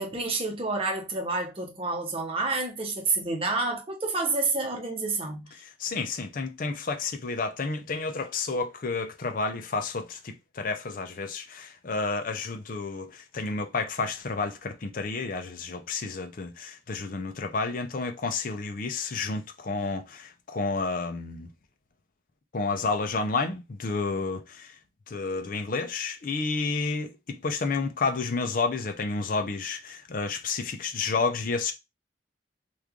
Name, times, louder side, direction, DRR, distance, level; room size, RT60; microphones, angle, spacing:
voice 1, 0.0-5.4, right 3 dB, 30° right, 0.8 m, -29 dB
voice 2, 5.6-21.5 22.5-24.7 25.1-31.7, left 4 dB, 45° left, 0.5 m, -30 dB
3.1 x 2.4 x 3.5 m
head